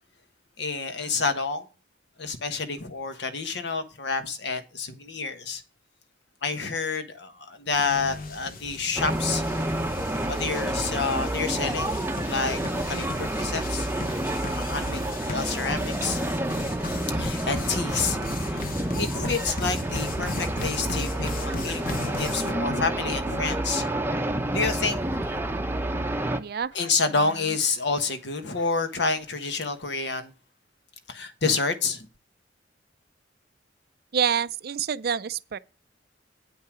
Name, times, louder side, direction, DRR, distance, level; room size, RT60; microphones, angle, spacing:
voice 1, 0.6-1.7 2.2-5.6 6.4-9.7 10.3-12.6 12.9-13.9 14.5-15.0 15.3-16.2 17.1-18.6 19.0-23.9 24.5-25.4 26.7-30.3 31.1-32.1, left 4 dB, 65° left, 1.3 m, -29 dB
sound 1, 7.7-22.5, left 3 dB, 50° left, 1.0 m, -37 dB
sound 2, 9.0-26.4, right 1 dB, 10° right, 0.7 m, -29 dB
voice 2, 26.3-26.7 34.1-35.6, right 7 dB, 55° right, 0.5 m, -27 dB
9.0 x 5.6 x 6.1 m
head